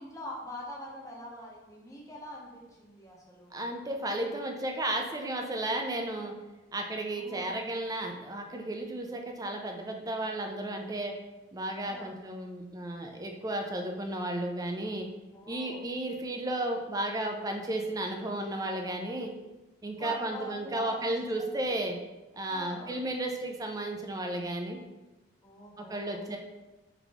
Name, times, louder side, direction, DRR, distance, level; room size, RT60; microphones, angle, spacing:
voice 1, 0.0-3.6 7.2-7.6 11.9-12.1 15.3-15.9 20.0-21.8 22.5-23.0 25.4-26.2, equal, 15° left, -3 dB, 0.7 m, -44 dB
voice 2, 3.5-6.3 6.7-11.1 11.5-15.1 15.5-19.3 19.8-22.0 22.3-24.8 25.8-26.4, right 1 dB, 20° right, 3 dB, 0.4 m, -33 dB
3.9 x 2.9 x 3.5 m, 1.1 s
head